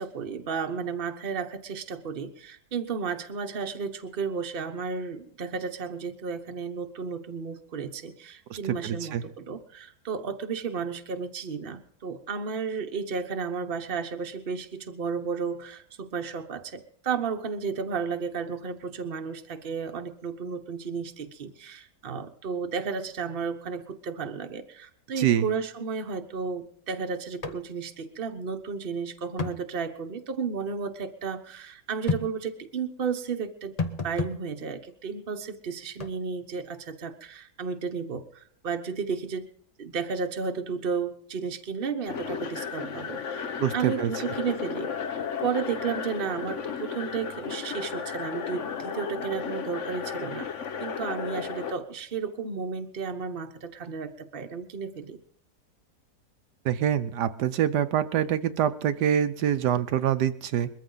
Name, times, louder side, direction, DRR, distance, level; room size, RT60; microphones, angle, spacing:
voice 1, 0.0-33.8 34.0-39.5 39.8-43.5 43.7-50.5 50.8-55.2, right 5 dB, 40° right, 6 dB, 1.2 m, -33 dB
voice 2, 8.8-9.2 25.2-25.4 43.6-44.1 56.6-60.7, right 10 dB, 80° right, 10 dB, 1.4 m, -25 dB
sound 1, 27.4-27.6 27.9-28.0 29.4-29.6 32.1-32.3 33.8-34.4 36.0-36.1, left 4 dB, 30° left, 1.0 m, -30 dB
sound 2, 42.1-51.7, left 6 dB, 50° left, 1.2 m, -34 dB
21.5 x 14.5 x 4.0 m, 0.66 s
omnidirectional pair, 1.7 m